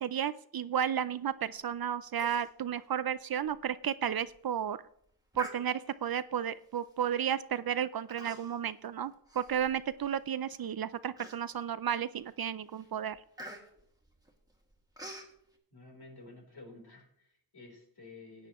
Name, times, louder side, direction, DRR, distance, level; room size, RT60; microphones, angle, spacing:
voice 1, 0.0-4.8 5.4-13.2, right 9 dB, 55° right, 15 dB, 0.5 m, -33 dB
Human voice, 2.2-2.5 2.8-2.9 3.4-3.6 4.1-4.4 5.3-6.1 6.8-7.1 8.1-8.7 9.1-10.1 10.6-10.7 11.2-11.7 12.2-12.4 12.7-15.3, equal, 10° right, 2.1 m, -47 dB
voice 2, 15.7-18.5, left 2 dB, 55° left, 0 dB, 3.8 m, -52 dB
16.5 x 8.9 x 3.0 m, 0.69 s
wide cardioid pair, 80°, 45 cm